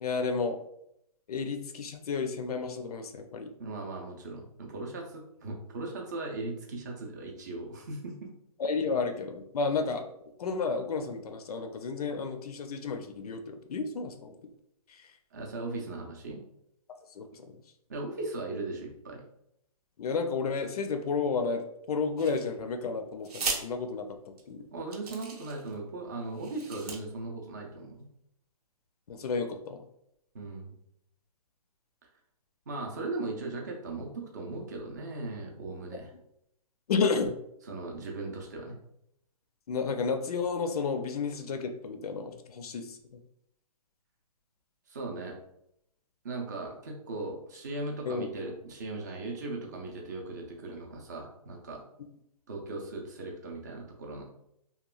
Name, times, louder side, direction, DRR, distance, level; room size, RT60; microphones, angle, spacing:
voice 1, 0.0-0.6 1.3-3.5 8.6-10.1 10.4-14.3 14.9-15.1 17.1-17.6 20.0-24.7 29.1-29.8 35.9-36.0 36.9-37.4 39.7-43.2 48.1-48.3, left 4 dB, 75° left, 7 dB, 0.4 m, -32 dB
voice 2, 3.6-8.3 15.3-16.4 17.9-19.2 24.7-28.1 30.3-30.7 32.7-36.1 37.7-38.7 44.9-45.3 46.2-51.8 52.5-54.2, right 2 dB, 30° right, 0 dB, 0.4 m, -38 dB
sound 1, 22.2-22.7 23.2-23.6 24.4-24.5 24.9-25.7 26.3-27.0, right 4 dB, 85° right, 0.6 m, -36 dB
2.9 x 2.2 x 2.3 m, 0.76 s
hypercardioid pair, 170°, 20 cm